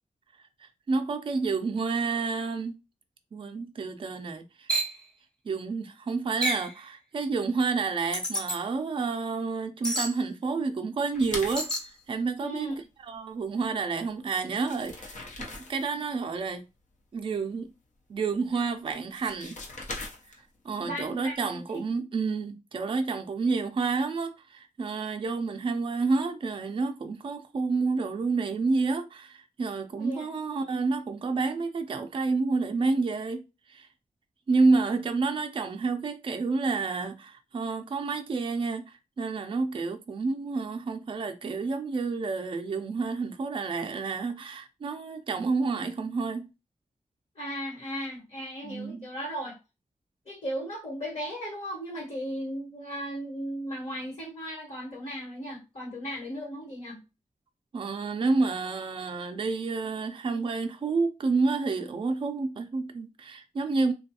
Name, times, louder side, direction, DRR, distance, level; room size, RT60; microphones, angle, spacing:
voice 1, 0.6-2.7 3.3-4.7 5.5-11.7 12.1-12.8 13.1-16.7 17.1-17.7 18.1-19.6 20.6-33.4 33.7-33.9 34.5-46.5 48.6-49.1 57.7-63.9, right 4 dB, 40° right, 0.4 m, -29 dB
sound 1, 4.7-5.0 6.4-6.7 8.1-8.6 9.8-10.1 11.6-11.9, right 1 dB, 5° left, 0.6 m, -29 dB
sound 2, 11.1-11.9 14.1-14.2 14.5-16.0 18.8-20.6, left 3 dB, 75° left, 0.7 m, -40 dB
voice 2, 12.4-12.8 20.8-21.8 29.9-30.4 47.3-49.6 50.2-57.0, equal, 50° left, 1.2 m, -36 dB
3.3 x 2.2 x 2.7 m
wide cardioid pair, 145°, 13 cm